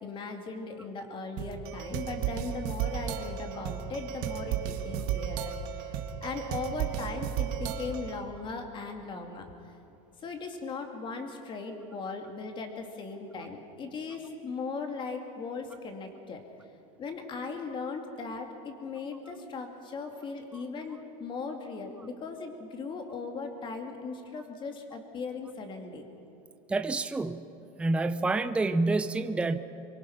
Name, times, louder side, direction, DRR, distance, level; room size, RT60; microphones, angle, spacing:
voice 1, 0.0-9.5 10.2-16.4 17.0-26.0, left 4 dB, 30° left, 4 dB, 2.4 m, -38 dB
sound 1, 1.4-8.2, right 9 dB, 55° right, 1.7 m, -34 dB
voice 2, 26.7-27.4 27.8-29.6, right 3 dB, 5° right, 9 dB, 0.6 m, -28 dB
24.5 x 23.5 x 5.8 m, 2.8 s
supercardioid pair, 150°, 17 cm